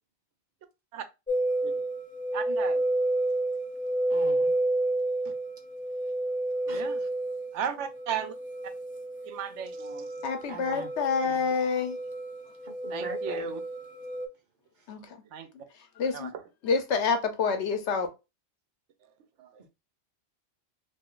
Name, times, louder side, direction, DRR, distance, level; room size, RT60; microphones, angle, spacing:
sound 1, 1.3-14.3, right 1 dB, 10° left, 0.6 m, -30 dB
voice 1, 2.3-2.8 6.7-7.0 7.5-8.3 9.3-10.1 12.9-13.6 15.3-15.5 16.1-16.4 19.4-19.5, right 8 dB, 85° right, 0.9 m, -35 dB
voice 2, 4.1-4.5 6.7-6.9 10.5-10.9 11.2-11.5 12.6-13.5, right 3 dB, 50° right, 0.7 m, -41 dB
voice 3, 10.2-12.0 14.9-15.1 16.0-16.3 16.6-18.1, left 5 dB, 75° left, 1.0 m, -27 dB
2.6 x 2.4 x 3.6 m
omnidirectional pair, 1.2 m